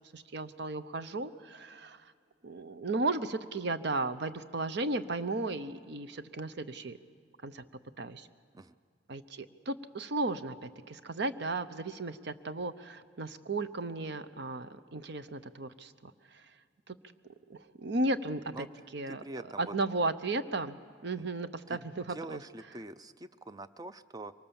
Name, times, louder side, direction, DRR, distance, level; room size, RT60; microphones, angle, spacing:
voice 1, 0.1-2.1 2.4-7.0 7.4-7.6 8.0-8.3 9.1-16.5 16.9-17.0 17.5-18.7 18.9-19.2 19.6-20.8 21.0-22.4, right 2 dB, 65° right, 12 dB, 0.8 m, -35 dB
voice 2, 19.1-19.7 21.2-21.3 21.7-21.8 22.1-24.3, right 2 dB, 20° right, 13 dB, 0.5 m, -44 dB
23.5 x 19.0 x 7.1 m, 2.3 s
head